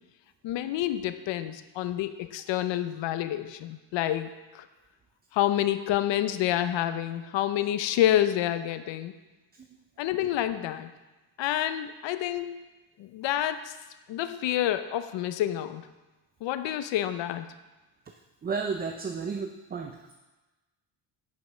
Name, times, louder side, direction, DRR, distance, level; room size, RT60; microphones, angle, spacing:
voice 1, 0.4-4.7 5.3-9.1 10.0-10.9 11.4-12.6 13.0-13.8 14.1-15.9 16.4-17.5, left 12 dB, 70° left, 11 dB, 0.7 m, -28 dB
voice 2, 18.4-20.1, right 5 dB, 20° right, 4 dB, 0.5 m, -33 dB
9.5 x 5.3 x 6.1 m, 1.1 s
cardioid pair, 125°, 45 cm